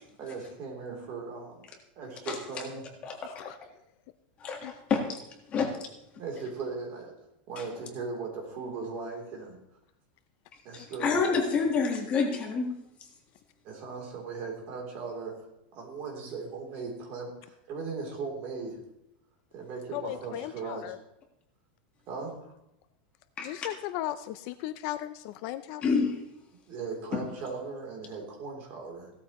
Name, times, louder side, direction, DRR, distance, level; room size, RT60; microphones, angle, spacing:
voice 1, 0.2-1.6 1.9-2.8 6.2-7.1 7.5-9.6 10.6-11.6 13.6-15.4 15.7-18.8 19.5-20.8 22.1-22.4 26.7-29.1, right 4 dB, 35° right, 0 dB, 3.3 m, -38 dB
voice 2, 2.2-2.6 3.0-3.5 4.4-5.2 5.5-5.9 7.6-7.7 10.7-12.7 23.4-23.5 25.8-26.1 27.1-27.2, left 5 dB, 20° left, 2 dB, 1.6 m, -28 dB
voice 3, 3.1-3.6 4.6-4.7 19.9-21.0 23.4-25.8, left 14 dB, 40° left, 11 dB, 0.5 m, -37 dB
17.0 x 13.0 x 3.1 m, 0.81 s
supercardioid pair, 175°, 6 cm